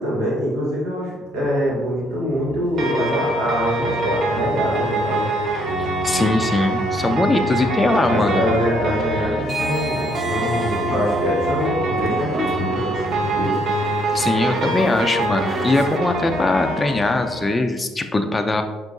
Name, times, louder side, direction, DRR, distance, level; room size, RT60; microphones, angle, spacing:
voice 1, 0.0-5.3 8.1-13.6, equal, 80° right, -5 dB, 1.5 m, -24 dB
sound 1, 1.2-16.8, left 3 dB, 80° left, 0.5 m, -39 dB
sound 2, 2.8-17.5, right 1 dB, 60° right, 0.9 m, -24 dB
voice 2, 6.0-8.4 14.1-18.6, left 2 dB, 20° left, 5 dB, 0.4 m, -21 dB
sound 3, 9.4-16.0, right 2 dB, 35° right, 0.6 m, -34 dB
4.5 x 3.7 x 2.6 m, 1.2 s
hypercardioid pair, 60°, 0 cm